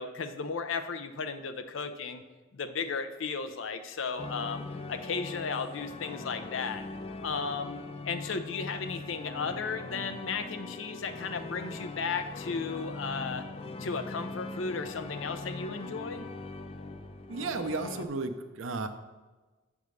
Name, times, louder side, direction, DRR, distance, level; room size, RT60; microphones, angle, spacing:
voice 1, 0.0-2.2 2.5-4.6 4.9-6.8 7.2-13.5 13.8-16.3, left 5 dB, 70° left, 9 dB, 0.6 m, -35 dB
sound 1, 4.2-18.1, left 3 dB, 30° left, 0.4 m, -41 dB
voice 2, 17.3-18.9, right 3 dB, 80° right, 8 dB, 0.6 m, -33 dB
8.1 x 3.6 x 6.3 m, 1.2 s
head